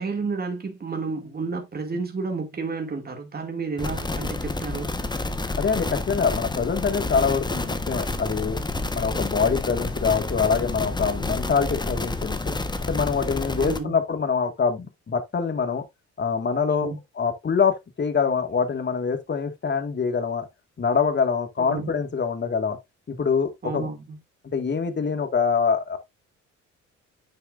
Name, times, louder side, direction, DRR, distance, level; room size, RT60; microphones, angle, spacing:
voice 1, 0.0-4.9 13.6-14.0 16.8-17.0 21.6-21.9 23.6-24.2, right 4 dB, 30° right, 2.4 m, -31 dB
sound 1, 3.8-13.8, left 2 dB, 15° left, 1.2 m, -29 dB
voice 2, 5.6-8.6 8.9-12.4 12.8-15.8 16.2-16.9 17.2-20.5 20.8-22.8 23.1-23.9 24.5-26.0, left 5 dB, 35° left, 1.9 m, -24 dB
9.0 x 6.6 x 2.5 m
cardioid pair, 90°, 30 cm